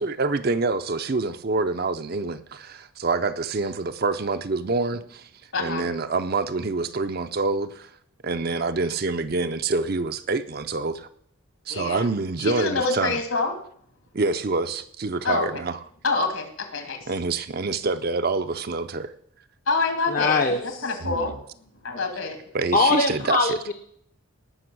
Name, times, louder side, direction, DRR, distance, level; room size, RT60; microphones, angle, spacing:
voice 1, 0.0-5.3 5.6-7.9 8.2-11.1 11.7-13.2 14.1-15.8 17.1-19.1 21.0-21.4 22.5-23.6, right 3 dB, 45° right, 10 dB, 0.6 m, -26 dB
voice 2, 5.5-5.9 11.7-12.1 12.4-13.5 15.2-15.5 16.0-17.1 19.7-21.3 21.8-22.4, left 3 dB, 70° left, 5 dB, 2.4 m, -26 dB
voice 3, 20.1-21.0 22.7-23.7, left 3 dB, 40° left, 5 dB, 0.7 m, -22 dB
18.0 x 6.1 x 6.1 m, 0.66 s
head